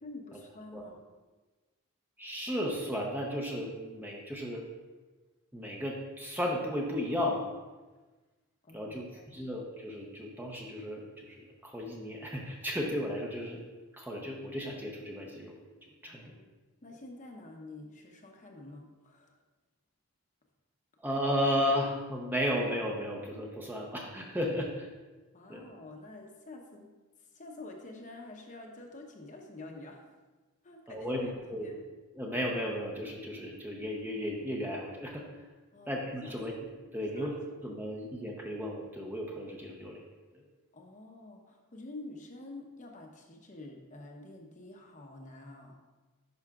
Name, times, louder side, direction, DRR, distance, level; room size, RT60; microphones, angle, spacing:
voice 1, 0.0-1.0 8.6-9.6 16.1-16.5 16.8-19.4 25.3-26.9 27.2-30.0 30.6-31.7 35.7-36.5 37.1-37.3 40.7-45.8, left 2 dB, 35° left, 2 dB, 0.9 m, -48 dB
voice 2, 2.2-4.7 5.5-7.5 8.7-13.6 13.9-15.6 16.0-16.3 21.0-24.9 25.5-25.6 30.9-31.8 32.1-35.3 35.9-40.0 40.3-40.4, equal, 10° right, -1 dB, 0.7 m, -34 dB
10.5 x 5.6 x 2.4 m, 1.3 s
head